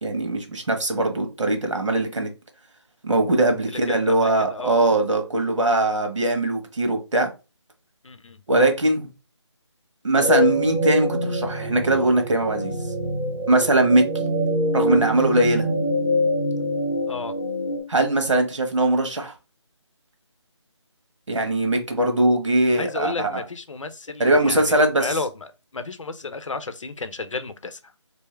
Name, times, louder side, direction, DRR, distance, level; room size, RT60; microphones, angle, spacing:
voice 1, 0.0-2.3 3.0-7.3 8.5-9.1 10.0-12.7 13.5-14.1 14.7-15.7 17.9-19.3 21.3-23.3 24.2-25.2, right 2 dB, 80° right, 1.2 m, -21 dB
voice 2, 3.7-4.8 8.0-8.4 17.1-17.3 22.8-24.6 25.0-25.3 25.7-27.8, left 3 dB, 90° left, 0.7 m, -32 dB
sound 1, 10.1-17.8, equal, 5° left, 0.7 m, -25 dB
3.4 x 2.7 x 3.2 m
figure-of-eight pair, 165°, 16 cm